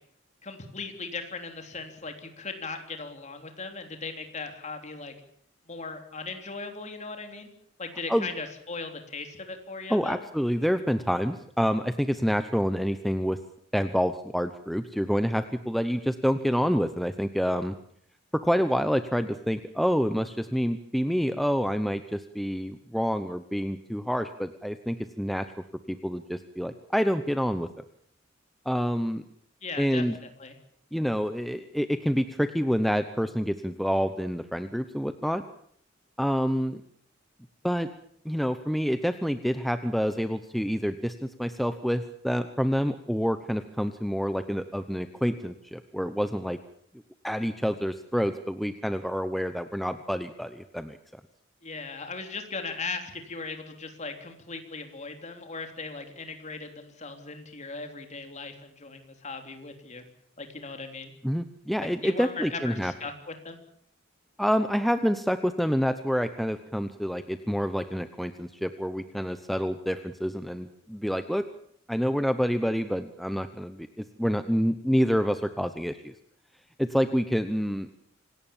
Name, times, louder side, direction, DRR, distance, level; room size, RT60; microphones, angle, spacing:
voice 1, 0.4-5.1 5.7-7.5 7.8-10.2 29.6-30.6 51.6-60.0 60.4-61.1 62.0-63.6, left 4 dB, 35° left, 5 dB, 3.4 m, -38 dB
voice 2, 9.9-13.4 13.7-17.7 18.3-25.5 25.9-27.7 28.7-29.2 29.8-30.2 30.9-35.4 36.2-36.8 37.6-37.9 38.2-46.6 47.2-51.0 61.2-62.9 64.4-71.4 71.9-76.1 76.8-77.9, equal, ahead, 9 dB, 0.8 m, -27 dB
26.5 x 18.0 x 7.3 m, 0.65 s
head